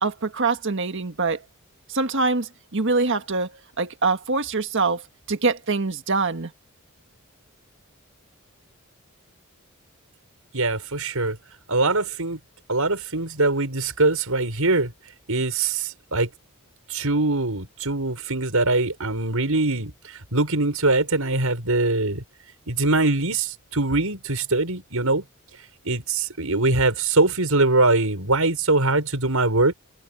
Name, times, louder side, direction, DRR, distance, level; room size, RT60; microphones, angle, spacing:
voice 1, 0.0-1.4 1.9-3.5 3.8-5.0 5.3-6.5, right 3 dB, 60° right, 1.7 m, -24 dB
voice 2, 10.5-11.4 11.7-12.4 12.7-14.9 15.3-16.3 16.9-22.2 22.7-25.2 25.8-29.7, right 2 dB, 80° right, 5.7 m, -22 dB
head